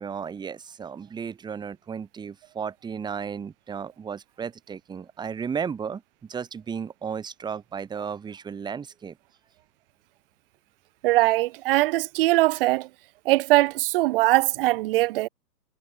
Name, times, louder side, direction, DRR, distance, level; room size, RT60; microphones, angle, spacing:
voice 1, 0.0-9.2, right 6 dB, 10° right, 3.2 m, -34 dB
voice 2, 11.0-12.9 13.2-15.3, right 18 dB, 35° right, 3.0 m, -21 dB
hypercardioid pair, 150°, 49 cm